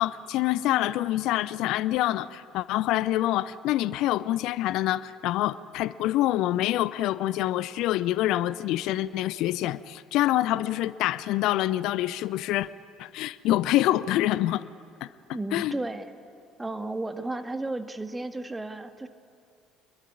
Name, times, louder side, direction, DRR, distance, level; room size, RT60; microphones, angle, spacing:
voice 1, 0.0-12.7 13.0-14.6 15.0-15.1 15.5-15.7, left 14 dB, 55° left, 0.6 m, -26 dB
voice 2, 15.3-16.1 16.6-19.1, right 2 dB, 10° right, 1.8 m, -33 dB
26.5 x 21.5 x 9.7 m
figure-of-eight pair, 55°, 0 cm